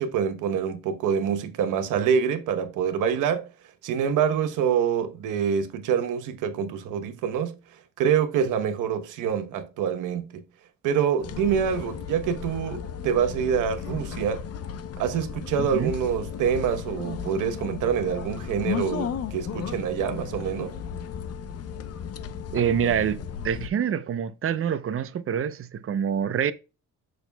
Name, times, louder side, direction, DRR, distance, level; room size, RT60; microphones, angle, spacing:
voice 1, 0.0-3.5 3.8-7.6 8.0-10.4 10.8-14.4 15.0-20.8, right 7 dB, 90° right, 1.1 m, -26 dB
sound 1, 11.2-23.7, left 7 dB, 55° left, 0.7 m, -35 dB
voice 2, 15.6-15.9 22.5-23.2 23.4-26.5, right 8 dB, 45° right, 0.7 m, -26 dB
7.0 x 6.4 x 2.3 m
cardioid pair, 90°, 30 cm